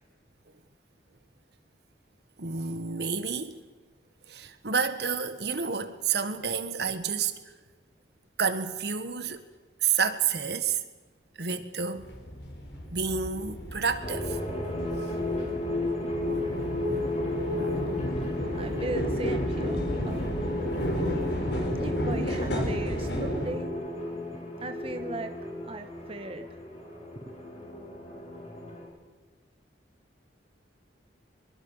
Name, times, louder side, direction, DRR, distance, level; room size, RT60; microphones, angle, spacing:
voice 1, 2.4-3.6 4.3-7.3 8.4-9.4 9.8-10.8 11.4-12.1 12.9-14.4 16.2-16.6 16.9-17.9 18.4-18.6 20.0-20.2 20.7-21.0, right 6 dB, 65° right, 1.5 m, -30 dB
sound 1, 12.0-23.5, equal, 70° left, 4.4 m, -32 dB
sound 2, 14.0-28.8, left 1 dB, 35° left, 6.1 m, -34 dB
voice 2, 17.7-18.3 18.5-20.3 21.8-23.7 24.6-25.3 25.6-26.5 27.2-27.3, right 2 dB, 30° right, 1.1 m, -38 dB
23.0 x 23.0 x 5.7 m
head